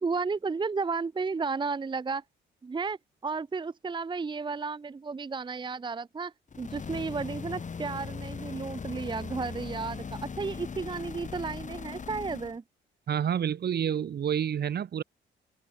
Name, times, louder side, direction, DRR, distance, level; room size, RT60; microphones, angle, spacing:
voice 1, 0.0-2.2 2.6-3.0 3.2-12.6, right 4 dB, 25° right, 0.8 m, -33 dB
sound 1, 6.5-12.6, left 5 dB, 40° left, 4.5 m, -39 dB
voice 2, 13.1-15.0, right 8 dB, 55° right, 1.9 m, -28 dB
open air
cardioid pair, 90°, 20 cm